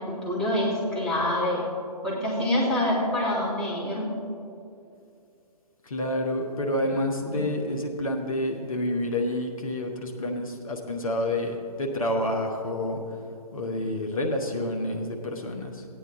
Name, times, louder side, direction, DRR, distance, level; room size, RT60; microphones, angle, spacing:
voice 1, 0.0-1.7 2.0-4.1 7.3-7.4, left 1 dB, 5° left, -7 dB, 1.9 m, -26 dB
voice 2, 5.8-13.0 13.5-15.8, left 1 dB, 60° left, 2 dB, 1.2 m, -28 dB
16.0 x 9.2 x 3.8 m, 2.6 s
figure-of-eight pair, 135°, 20 cm